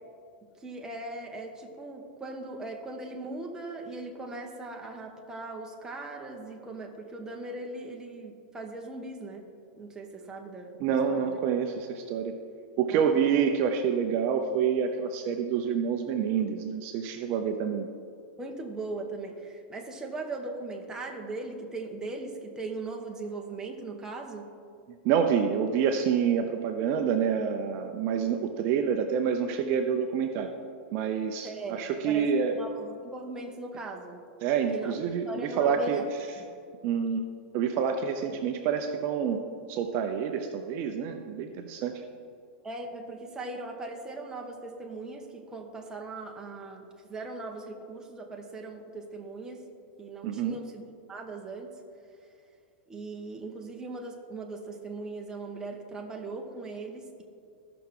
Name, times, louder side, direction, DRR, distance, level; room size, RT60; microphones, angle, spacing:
voice 1, 0.6-11.4 12.9-13.1 18.4-24.5 31.4-34.2 34.7-36.0 36.4-36.5 38.3-38.4 42.6-49.6 50.0-50.8 51.1-51.7 52.9-57.2, right 2 dB, 10° right, 1 dB, 1.1 m, -39 dB
voice 2, 10.8-12.3 12.8-17.9 25.0-30.5 30.9-32.5 34.4-36.0 36.8-37.2 37.5-39.4 39.7-42.0 50.2-50.6, right 7 dB, 45° right, 5 dB, 0.6 m, -27 dB
15.0 x 5.9 x 3.8 m, 2.4 s
supercardioid pair, 140°, 6 cm